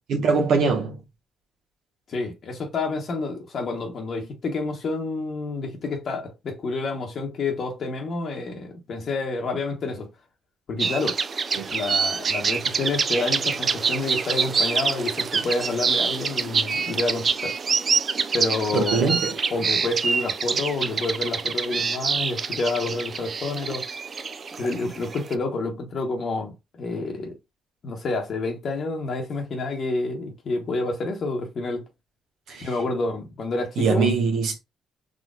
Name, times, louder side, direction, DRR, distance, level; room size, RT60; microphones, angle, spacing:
voice 1, 0.1-1.0 11.5-11.7 18.7-19.3 32.5-32.7 33.8-34.5, right 5 dB, 75° right, 1.2 m, -22 dB
voice 2, 2.1-10.1 10.7-11.2 11.7-17.5 18.3-19.2 19.5-23.9 24.6-27.4 27.8-31.8 32.6-34.1, left 3 dB, 55° left, 1.0 m, -29 dB
sound 1, 10.8-25.3, right 5 dB, 45° right, 0.4 m, -26 dB
3.8 x 3.0 x 2.4 m
cardioid pair, 90°, 0 cm